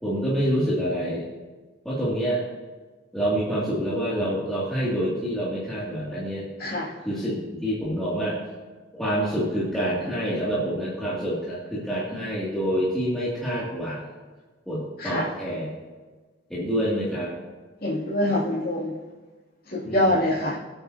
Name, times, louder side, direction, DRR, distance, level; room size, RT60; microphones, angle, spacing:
voice 1, 0.0-1.2 1.8-2.4 3.1-6.5 7.0-8.4 8.9-14.0 14.7-15.8 16.5-17.4 19.8-20.2, equal, ahead, -10 dB, 2.6 m, -27 dB
voice 2, 6.6-6.9 15.0-15.3 17.8-18.9 19.7-20.6, left 1 dB, 50° left, -8 dB, 2.6 m, -24 dB
22.5 x 8.9 x 2.9 m, 1.4 s
head